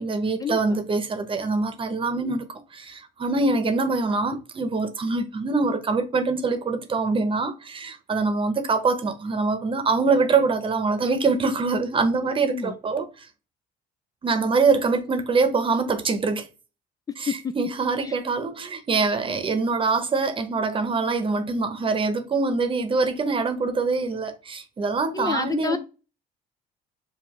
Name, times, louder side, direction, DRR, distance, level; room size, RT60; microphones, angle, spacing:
voice 1, 0.0-2.5 2.7-13.3 14.2-16.5 17.2-25.8, right 4 dB, 30° right, 0.8 m, -24 dB
voice 2, 12.4-12.8 17.3-17.5 18.0-18.1 25.1-25.8, left 5 dB, 20° left, 0.3 m, -28 dB
7.0 x 2.5 x 3.0 m
cardioid pair, 110°, 17 cm